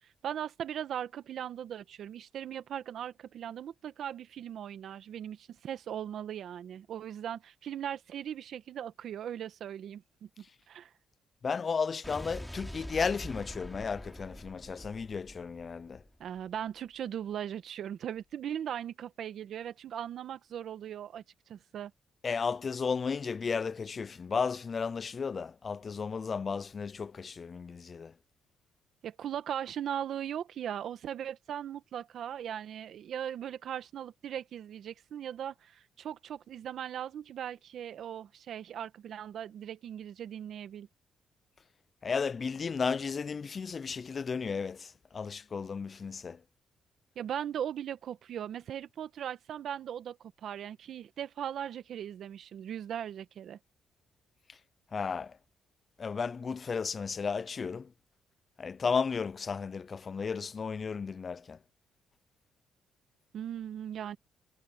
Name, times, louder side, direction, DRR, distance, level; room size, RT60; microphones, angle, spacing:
voice 1, 0.2-10.9 16.2-21.9 29.0-40.9 47.1-53.6 63.3-64.2, right 9 dB, 65° right, 1.3 m, -39 dB
voice 2, 11.4-16.0 22.2-28.1 42.0-46.4 54.9-55.4 56.0-57.9 58.6-61.6, left 5 dB, 40° left, 0.4 m, -34 dB
Explosion, 12.0-16.4, equal, ahead, 3.8 m, -45 dB
cardioid pair, 90°, 0 cm